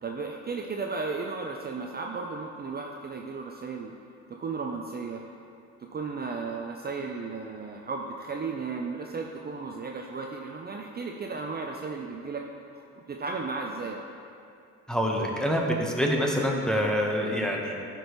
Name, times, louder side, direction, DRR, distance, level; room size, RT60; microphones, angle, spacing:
voice 1, 0.0-3.9 4.3-5.2 5.8-12.4 12.7-14.0, right 4 dB, 30° right, 1 dB, 0.6 m, -35 dB
voice 2, 14.9-17.7, equal, ahead, -1 dB, 1.1 m, -26 dB
12.0 x 5.2 x 3.1 m, 2.5 s
cardioid pair, 90°, 30 cm